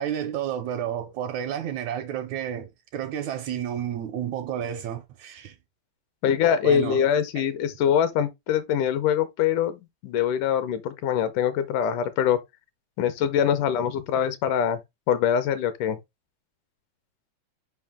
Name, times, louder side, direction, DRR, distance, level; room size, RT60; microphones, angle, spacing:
voice 1, 0.0-5.6 6.6-7.0 7.4-7.5, right 10 dB, 75° right, 1.8 m, -31 dB
voice 2, 6.2-12.4 13.0-14.8 15.1-16.0, left 9 dB, 75° left, 2.2 m, -23 dB
5.5 x 5.4 x 3.5 m
omnidirectional pair, 3.8 m